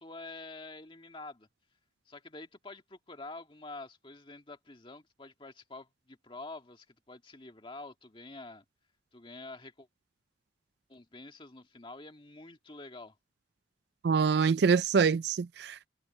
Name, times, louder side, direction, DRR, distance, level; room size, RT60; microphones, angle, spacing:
voice 1, 0.0-1.5 2.1-8.6 9.1-9.9 10.9-13.1, left 2 dB, 25° left, 2.0 m, -47 dB
voice 2, 14.0-15.9, right 5 dB, 60° right, 0.4 m, -25 dB
head